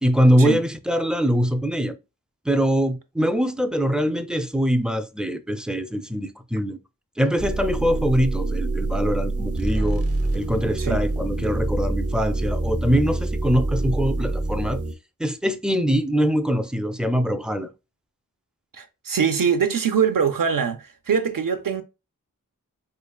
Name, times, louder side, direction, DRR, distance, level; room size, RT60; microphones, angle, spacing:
voice 1, 0.0-2.0 2.5-6.8 7.2-10.0 10.3-14.8 15.2-17.7, equal, 5° right, 0.3 m, -23 dB
sound 1, 7.4-14.9, right 2 dB, 45° right, 0.7 m, -26 dB
voice 2, 18.7-21.8, right 6 dB, 85° right, 0.6 m, -23 dB
5.0 x 2.3 x 2.3 m
wide cardioid pair, 65°, 32 cm